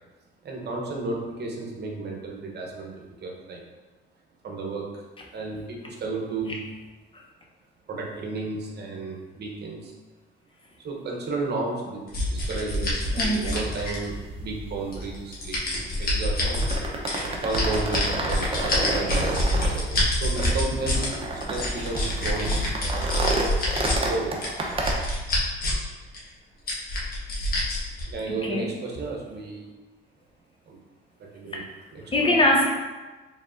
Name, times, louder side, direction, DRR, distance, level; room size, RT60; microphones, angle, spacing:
voice 1, 0.4-2.9 3.2-3.6 4.4-5.0 5.3-6.6 7.9-9.9 10.8-12.0 12.3-16.6 17.2-22.5 22.8-23.3 24.0-24.7 27.4-27.5 28.1-29.7 30.7-30.8 31.2-31.6 31.9-32.4, right 3 dB, 55° right, 0 dB, 0.9 m, -33 dB
sound 1, 12.1-14.3 14.9-16.8 17.1-21.1 21.4-24.0 24.4-25.9 26.1-26.2 26.7-28.0, left 1 dB, 50° left, 1.4 m, -26 dB
sound 2, 12.7-24.9, right 2 dB, 30° right, 0.8 m, -31 dB
voice 2, 13.2-13.6 28.3-28.7 31.5-31.7 32.1-32.7, left 1 dB, 25° left, -1 dB, 0.7 m, -23 dB
4.4 x 3.6 x 2.6 m, 1.2 s
cardioid pair, 90°, 20 cm